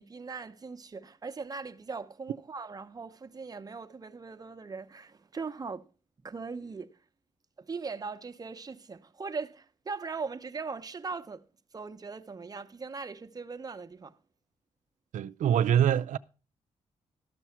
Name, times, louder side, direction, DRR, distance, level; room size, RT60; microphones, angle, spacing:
voice 1, 0.0-5.9 6.2-7.0 7.6-11.4 11.7-14.2, right 4 dB, 30° right, 0.8 m, -40 dB
voice 2, 15.1-16.2, right 10 dB, 85° right, 0.5 m, -24 dB
12.5 x 6.2 x 5.7 m
cardioid pair, 90°, 13 cm